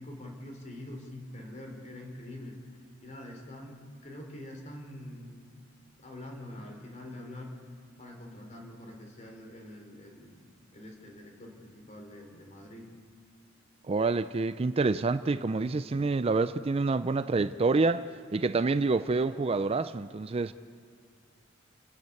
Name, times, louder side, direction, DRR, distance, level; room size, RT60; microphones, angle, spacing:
voice 1, 0.0-2.6 3.0-5.4 6.0-7.6 8.0-12.9, left 1 dB, 40° left, 3.7 m, -45 dB
voice 2, 13.9-18.1 18.3-20.5, right 3 dB, 30° right, 0.4 m, -27 dB
29.5 x 10.5 x 8.4 m
head